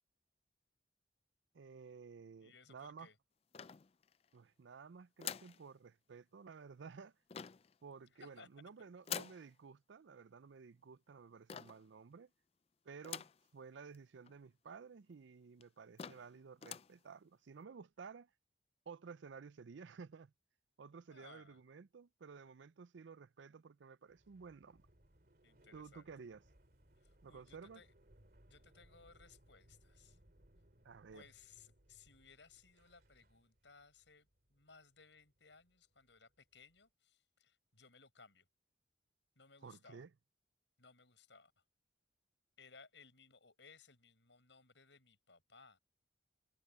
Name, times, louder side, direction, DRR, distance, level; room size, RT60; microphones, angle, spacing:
voice 1, 1.5-3.1 4.3-7.1 7.8-12.3 12.8-13.3 13.5-18.3 18.9-20.3 20.8-24.9 25.7-26.4 27.2-27.8 30.8-31.2 39.6-40.1, right 5 dB, 80° right, 0.5 m, -54 dB
voice 2, 2.4-3.2 8.1-8.5 21.1-21.6 25.4-26.1 27.0-27.9 28.5-30.2 31.1-38.5 39.4-40.0 40.8-41.5 42.6-45.8, left 4 dB, 75° left, 6.2 m, -62 dB
sound 1, 3.5-4.3 5.2-5.6 7.3-7.7 9.0-9.5 11.5-11.9 13.0-13.5 13.9-14.0 14.2-14.3 15.1-15.2 15.6-15.7 16.0-16.3 16.6-17.0, left 8 dB, 30° left, 0.3 m, -46 dB
sound 2, 24.1-36.8, right 1 dB, 50° right, 2.9 m, -69 dB
head